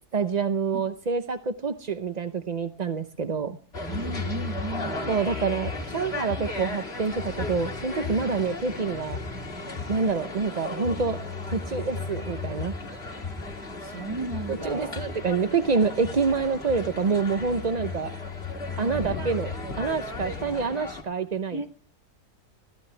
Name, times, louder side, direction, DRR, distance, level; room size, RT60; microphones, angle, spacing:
voice 1, 0.1-3.6 5.1-9.2 9.9-13.1 14.5-18.1 18.8-21.7, right 5 dB, 40° right, 9 dB, 0.6 m, -27 dB
sound 1, 3.7-21.0, left 3 dB, 40° left, 2.5 m, -34 dB
voice 2, 3.9-5.2 13.8-15.0 18.8-19.3 21.5-21.7, right 2 dB, 20° right, 5 dB, 1.9 m, -35 dB
21.5 x 15.5 x 3.3 m, 0.37 s
omnidirectional pair, 1.7 m